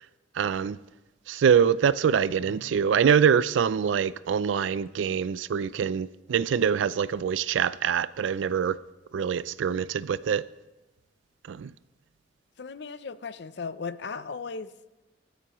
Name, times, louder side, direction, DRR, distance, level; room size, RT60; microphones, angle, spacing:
voice 1, 0.4-0.8 1.3-8.8 9.1-10.4 11.5-11.7, right 7 dB, 85° right, 0.3 m, -24 dB
voice 2, 2.4-2.8 12.6-14.7, left 5 dB, 65° left, 0.5 m, -37 dB
24.0 x 9.2 x 3.0 m
head